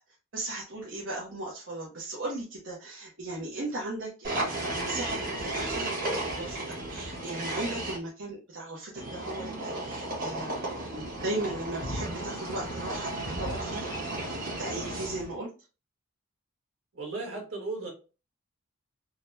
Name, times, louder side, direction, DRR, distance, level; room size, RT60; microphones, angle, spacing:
voice 1, 0.3-13.1 13.4-15.5, right 2 dB, 60° right, -5 dB, 0.8 m, -37 dB
sound 1, 4.2-8.0 9.0-15.3, right 1 dB, 45° right, 1.4 m, -34 dB
voice 2, 16.9-17.9, right 3 dB, 80° right, -1 dB, 1.6 m, -35 dB
3.8 x 2.1 x 2.7 m, 0.33 s
head